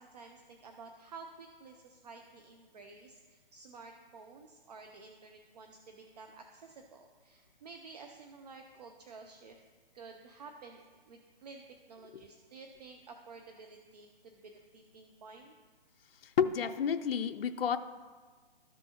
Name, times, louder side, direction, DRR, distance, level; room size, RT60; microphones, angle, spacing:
voice 1, 0.0-9.6 9.9-11.6 11.9-15.5, right 4 dB, 40° right, 4 dB, 0.6 m, -52 dB
voice 2, 16.2-17.8, left 7 dB, 70° left, 8 dB, 0.5 m, -30 dB
13.0 x 6.3 x 2.9 m, 1.5 s
hypercardioid pair, 155°, 30 cm